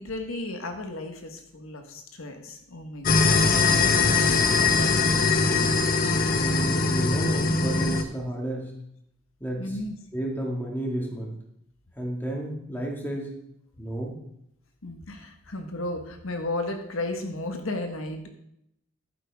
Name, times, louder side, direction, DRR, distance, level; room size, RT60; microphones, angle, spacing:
voice 1, 0.0-5.4 9.6-9.9 14.8-18.3, left 2 dB, 85° left, 5 dB, 1.4 m, -35 dB
sound 1, 3.1-8.0, left 4 dB, 45° left, 0.8 m, -21 dB
voice 2, 6.3-8.7 9.4-9.8 10.1-11.3 12.0-13.4 13.8-14.2, right 1 dB, 10° left, -1 dB, 2.1 m, -32 dB
11.5 x 9.3 x 3.6 m, 0.76 s
head